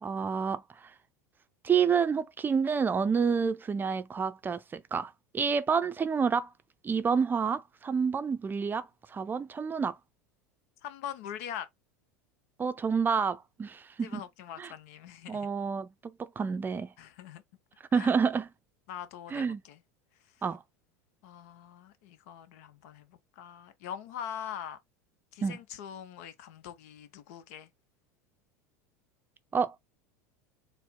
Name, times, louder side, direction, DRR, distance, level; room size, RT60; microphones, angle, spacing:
voice 1, 0.0-0.6 1.6-6.5 6.8-10.0 12.6-14.2 14.6-14.7 15.3-16.9 17.9-18.5 19.3-19.6 20.4-20.6 25.4-25.6 29.5-29.8, right 6 dB, 25° right, 0.5 m, -29 dB
voice 2, 10.8-11.7 14.0-15.5 17.0-17.4 17.9-18.1 18.9-19.8 21.2-24.8 25.3-27.7, left 9 dB, 65° left, 0.8 m, -43 dB
4.3 x 2.1 x 3.7 m
hypercardioid pair, 85°, 9 cm